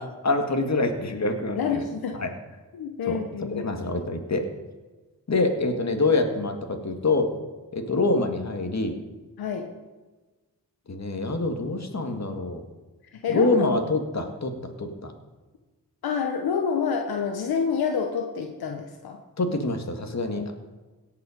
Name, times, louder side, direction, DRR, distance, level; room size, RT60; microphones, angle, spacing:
voice 1, 0.0-1.8 2.2-2.3 3.1-3.2 3.5-4.5 5.3-7.3 7.7-9.0 10.9-12.6 13.3-15.1 19.4-20.5, left 2 dB, 45° left, 5 dB, 1.8 m, -26 dB
voice 2, 1.6-2.2 2.7-4.1 9.4-9.7 13.1-13.6 16.0-19.2 20.3-20.5, left 6 dB, 80° left, 3 dB, 1.0 m, -28 dB
17.5 x 5.8 x 5.1 m, 1.2 s
cardioid pair, 50°, 36 cm